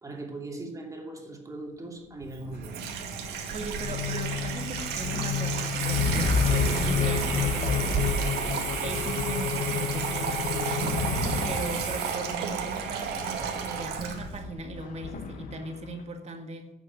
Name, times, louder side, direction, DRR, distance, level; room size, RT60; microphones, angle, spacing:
voice 1, 0.0-2.8 8.7-8.8, right 2 dB, 20° right, 1 dB, 2.7 m, -39 dB
Water tap faucet / Sink (filling or washing), 2.2-14.4, right 6 dB, 75° right, 2.0 m, -32 dB
sound 1, 2.4-16.0, left 4 dB, 55° left, 1.4 m, -33 dB
voice 2, 3.5-8.3 8.8-11.0 11.5-16.7, right 3 dB, 40° right, 4 dB, 1.9 m, -38 dB
sound 2, 3.8-11.7, left 8 dB, 80° left, 1.2 m, -31 dB
11.5 x 6.7 x 7.4 m, 0.93 s
cardioid pair, 110°, 17 cm